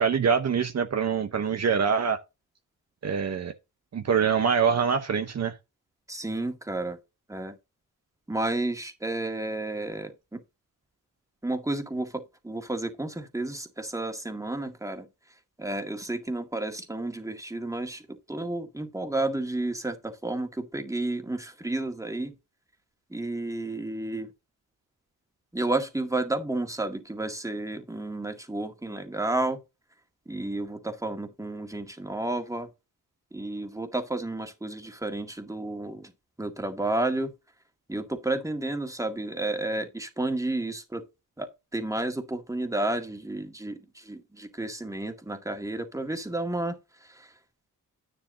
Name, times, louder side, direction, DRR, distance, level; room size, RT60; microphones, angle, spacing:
voice 1, 0.0-2.2 3.0-3.5 3.9-5.6, right 6 dB, 55° right, 0.9 m, -24 dB
voice 2, 6.1-7.0 7.3-7.5 8.3-10.4 11.4-15.1 15.6-22.3 23.1-24.3 25.5-29.6 30.3-32.7 33.3-36.1 36.4-37.3 37.9-41.0 41.4-47.3, right 2 dB, 10° right, 1.9 m, -31 dB
10.5 x 9.5 x 2.7 m
wide cardioid pair, 100°, 32 cm